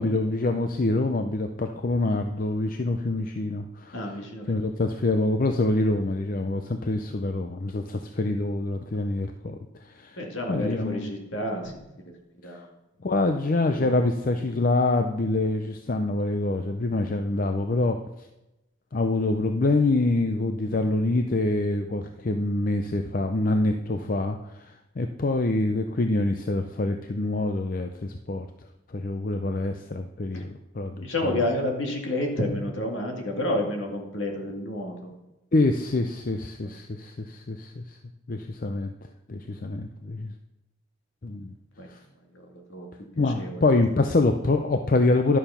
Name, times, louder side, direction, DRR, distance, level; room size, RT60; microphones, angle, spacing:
voice 1, 0.0-3.9 4.5-10.2 10.5-11.1 13.0-18.3 18.9-28.5 28.9-31.4 35.5-38.0 38.3-38.9 39.3-40.3 41.2-41.5 41.9-42.0 43.2-45.4, left 2 dB, 40° left, 6 dB, 0.5 m, -26 dB
voice 2, 3.9-4.5 10.2-11.9 12.4-12.7 13.7-14.0 30.3-30.4 31.0-35.1 41.8-41.9 42.3-42.9 43.2-43.6, left 1 dB, 65° left, 1 dB, 2.1 m, -30 dB
11.0 x 6.9 x 5.6 m, 0.95 s
head